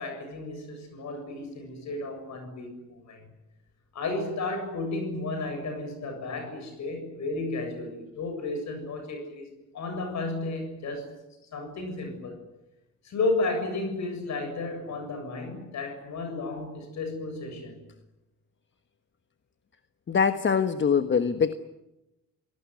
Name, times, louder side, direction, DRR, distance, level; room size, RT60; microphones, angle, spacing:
voice 1, 0.0-3.2 3.9-9.5 9.7-11.1 11.5-12.4 13.0-17.8, left 2 dB, 65° left, 7.5 m, -33 dB
voice 2, 20.1-21.5, left 6 dB, 40° left, 1.4 m, -23 dB
27.0 x 18.5 x 9.6 m
cardioid pair, 90°, 30 cm